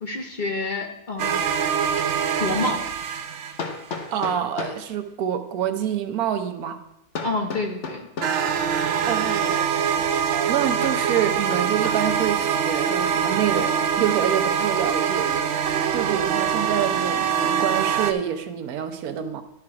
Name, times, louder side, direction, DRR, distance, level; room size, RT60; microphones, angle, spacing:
voice 1, 0.0-1.4 2.4-2.8 7.2-8.1, left 3 dB, 40° left, 3 dB, 0.8 m, -28 dB
sound 1, 1.2-3.9 8.2-18.1, right 7 dB, 65° right, 0.8 m, -24 dB
Hammer, 3.6-4.9 7.1-8.4 10.8-12.1, left 4 dB, 55° left, 1.2 m, -34 dB
voice 2, 4.1-6.8 9.1-9.8 10.3-15.3 15.9-19.4, right 9 dB, 85° right, 8 dB, 1.2 m, -27 dB
11.5 x 4.8 x 4.7 m, 0.83 s
omnidirectional pair, 1.5 m